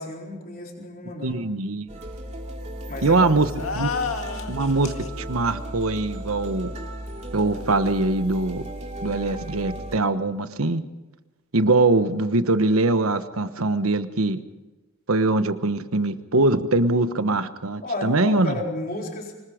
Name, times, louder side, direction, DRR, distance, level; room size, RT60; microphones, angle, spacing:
voice 1, 0.0-1.4 2.9-3.3 17.8-19.3, left 2 dB, 45° left, 0 dB, 4.1 m, -32 dB
voice 2, 1.2-1.9 3.0-3.5 3.7-3.9 4.5-6.7 7.3-8.6 9.0-10.8 11.5-14.4 15.1-18.6, right 2 dB, 90° right, 11 dB, 1.2 m, -22 dB
sound 1, 1.9-10.0, right 1 dB, 35° right, 2.5 m, -35 dB
sound 2, 3.5-5.1, left 5 dB, 80° left, 1.9 m, -30 dB
25.0 x 20.5 x 5.1 m, 1.1 s
head